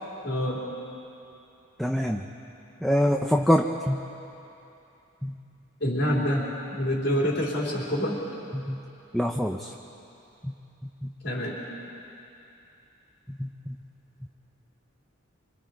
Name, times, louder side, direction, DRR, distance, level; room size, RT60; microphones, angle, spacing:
voice 1, 0.2-0.6 5.8-8.2 11.2-11.6, equal, 60° left, -5 dB, 4.0 m, -27 dB
voice 2, 1.8-2.2 2.8-4.0 5.2-5.3 8.5-8.8 9.1-9.7 10.4-10.5 10.8-11.1 13.4-13.8, equal, ahead, 2 dB, 0.7 m, -25 dB
26.5 x 25.5 x 4.8 m, 2.8 s
head